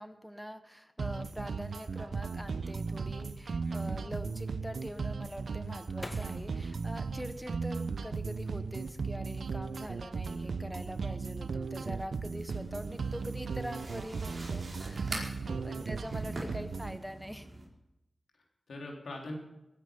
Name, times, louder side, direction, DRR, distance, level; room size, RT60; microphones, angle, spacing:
voice 1, 0.0-15.4 15.6-17.5, equal, ahead, 9 dB, 1.1 m, -44 dB
sound 1, 1.0-17.0, right 4 dB, 80° right, 0.8 m, -36 dB
voice 2, 3.6-4.2 15.5-15.8 16.4-16.5 18.3-19.4, left 2 dB, 90° left, 0 dB, 3.6 m, -45 dB
sound 2, 5.0-8.1 8.6-9.4 9.7-10.1, left 1 dB, 20° left, 1.8 m, -49 dB
sound 3, 12.5-17.6, right 2 dB, 50° right, 4.6 m, -44 dB
19.5 x 10.0 x 5.4 m, 0.92 s
cardioid pair, 60°, 0 cm